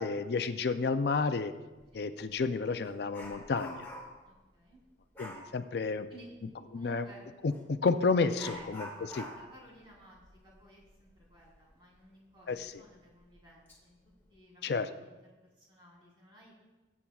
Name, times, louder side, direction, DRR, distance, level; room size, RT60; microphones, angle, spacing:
voice 1, 0.0-1.5 1.9-3.9 5.2-6.1 6.7-7.1 7.4-8.9 9.1-9.3 12.5-12.7 14.6-14.9, left 4 dB, 60° left, 10 dB, 0.4 m, -31 dB
Dog, 1.8-1.9 2.4-4.3 5.1-5.5 7.5-7.6 8.3-11.6 12.0-12.1 12.6-12.7 13.3-13.8 14.1-14.4, equal, 10° left, 1.9 m, -47 dB
voice 2, 4.2-4.8 6.1-7.2 8.4-14.0 14.3-15.1 15.4-16.5, right 1 dB, 30° right, -4 dB, 3.3 m, -56 dB
19.5 x 8.3 x 2.4 m, 1.2 s
head